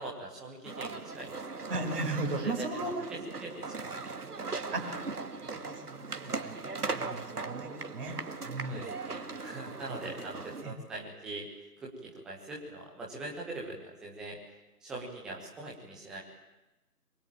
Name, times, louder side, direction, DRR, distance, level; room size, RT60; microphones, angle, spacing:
voice 1, 0.0-1.6 2.3-4.5 5.4-5.6 6.8-7.0 8.7-11.5 11.8-14.4 14.8-16.2, right 2 dB, ahead, -3 dB, 1.2 m, -42 dB
sound 1, 0.6-10.6, right 4 dB, 70° right, 2.3 m, -39 dB
voice 2, 1.7-3.1 4.7-4.8 5.4-8.2 8.4-8.9 9.9-10.0 10.6-10.7, right 2 dB, 35° right, 0 dB, 5.7 m, -36 dB
27.0 x 23.5 x 8.8 m, 1.0 s
figure-of-eight pair, 155°, 48 cm